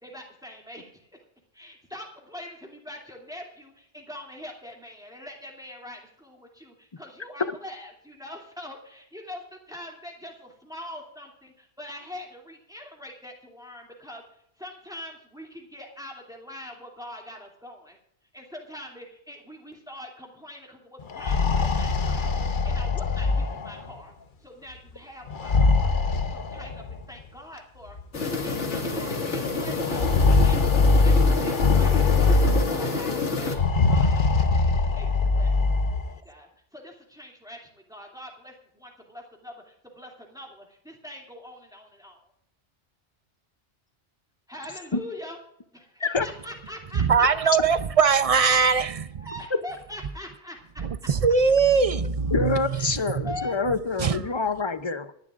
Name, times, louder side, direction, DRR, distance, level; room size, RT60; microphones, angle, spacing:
voice 1, 0.0-1.1 1.5-14.2 14.6-18.0 18.3-22.3 22.6-24.1 24.4-25.9 26.3-30.6 30.9-31.9 32.2-35.1 35.3-35.5 35.9-36.0 36.2-42.3 44.5-45.4 45.7-47.0 48.7-48.9 49.2-50.8 52.7-53.6, left 1 dB, 5° right, 2.6 m, -43 dB
sound 1, 21.0-23.9 25.3-27.0 28.0-28.1 28.4-28.5 29.8-32.9 33.5-36.1, left 3 dB, 50° left, 1.0 m, -22 dB
sound 2, 28.1-33.6, left 3 dB, 80° left, 2.3 m, -28 dB
voice 2, 46.9-49.3 50.8-53.4 54.0-54.2, right 5 dB, 45° right, 0.5 m, -22 dB
voice 3, 52.3-55.1, left 4 dB, 30° left, 0.5 m, -26 dB
26.5 x 11.0 x 2.5 m
omnidirectional pair, 1.2 m